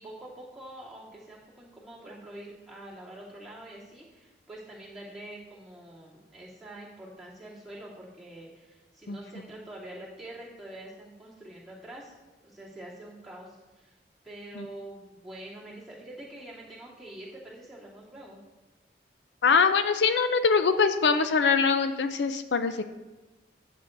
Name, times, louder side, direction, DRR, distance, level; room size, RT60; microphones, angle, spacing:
voice 1, 0.0-12.1 12.4-13.9 14.2-18.4, right 1 dB, ahead, -8 dB, 2.7 m, -45 dB
voice 2, 19.4-22.8, left 5 dB, 70° left, 9 dB, 0.4 m, -23 dB
14.0 x 8.1 x 2.6 m, 1.2 s
head